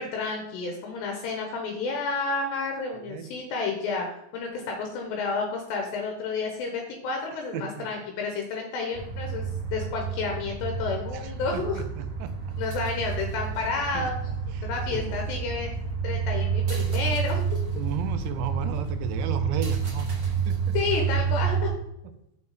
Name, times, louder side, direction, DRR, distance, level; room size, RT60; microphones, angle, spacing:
voice 1, 0.0-4.1 4.3-9.5 9.7-11.8 12.6-14.2 14.6-15.7 16.0-17.4 20.7-21.7, left 4 dB, 80° left, 2 dB, 3.1 m, -30 dB
voice 2, 7.5-7.9 11.1-12.3 13.9-15.2 17.7-20.1 20.5-20.8, right 8 dB, 85° right, 9 dB, 2.9 m, -35 dB
sound 1, 8.9-21.7, right 6 dB, 50° right, 1.3 m, -29 dB
6.9 x 6.5 x 4.0 m, 0.82 s
omnidirectional pair, 5.1 m